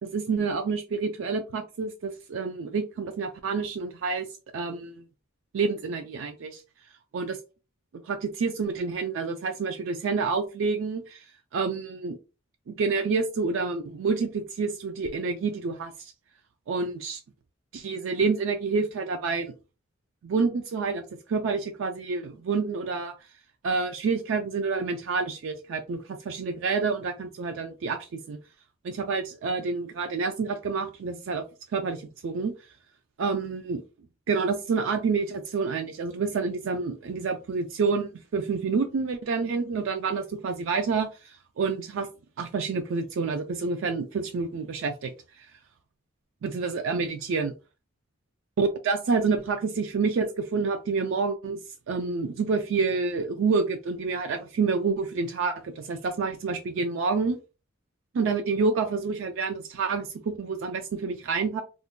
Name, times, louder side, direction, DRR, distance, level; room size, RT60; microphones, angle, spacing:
voice 1, 0.0-4.3 4.5-5.0 5.5-6.6 7.1-7.4 8.0-11.2 11.5-12.2 12.7-16.1 16.7-17.2 17.7-19.5 20.2-21.0 21.3-23.1 23.6-28.4 28.8-31.4 31.7-32.5 33.2-33.8 34.3-42.1 42.4-45.1 45.4-45.5 46.4-47.5 48.6-51.6 51.9-57.4 58.1-61.6, right 4 dB, 70° right, 6 dB, 0.4 m, -28 dB
2.5 x 2.1 x 3.6 m, 0.32 s
head